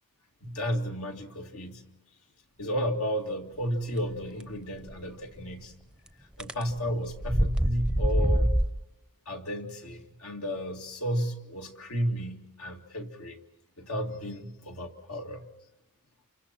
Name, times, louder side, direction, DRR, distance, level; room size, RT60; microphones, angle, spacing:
voice 1, 0.4-1.8 2.6-5.7 6.4-8.6 9.3-13.4 13.8-15.5, equal, 75° left, 3 dB, 2.3 m, -33 dB
sound 1, 4.9-5.0 6.4-6.6 7.1-8.7, right 1 dB, 5° right, 0.7 m, -24 dB
29.0 x 26.0 x 4.5 m, 0.97 s
head